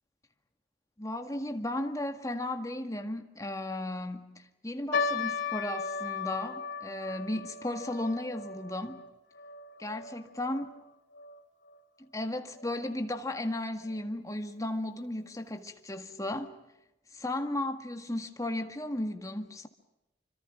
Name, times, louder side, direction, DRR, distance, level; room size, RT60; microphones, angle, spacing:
voice 1, 1.0-9.0 9.8-10.7 12.0-16.5 17.1-19.7, left 1 dB, 15° left, 1.8 m, -35 dB
sound 1, 4.9-11.4 11.7-11.8 12.5-12.8 13.4-13.5 13.9-14.0, left 5 dB, 65° left, 2.6 m, -37 dB
27.0 x 25.5 x 6.0 m
head